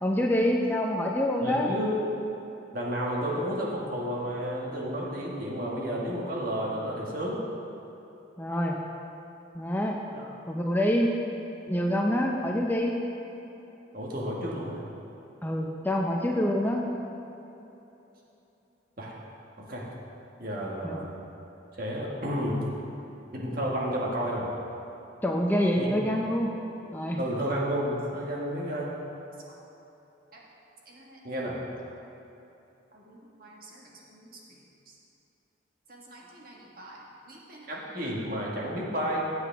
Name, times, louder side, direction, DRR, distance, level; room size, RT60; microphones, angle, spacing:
voice 1, 0.0-1.7 8.4-8.8 9.5-10.0 10.5-11.4 11.7-13.0 15.4-16.8 20.8-21.0 25.2-26.5 26.9-27.2, equal, 10° left, 0 dB, 0.6 m, -26 dB
voice 2, 1.4-2.0 2.7-7.4 10.1-10.2 13.9-14.8 19.0-19.1 19.6-19.9 20.4-21.1 21.7-22.6 23.3-24.5 25.8-25.9 27.2-28.9 29.5-29.6 30.9-31.6 32.9-34.3 35.9-37.0 37.3-39.2, equal, 50° right, -3 dB, 1.7 m, -32 dB
15.5 x 8.0 x 3.5 m, 3.0 s
head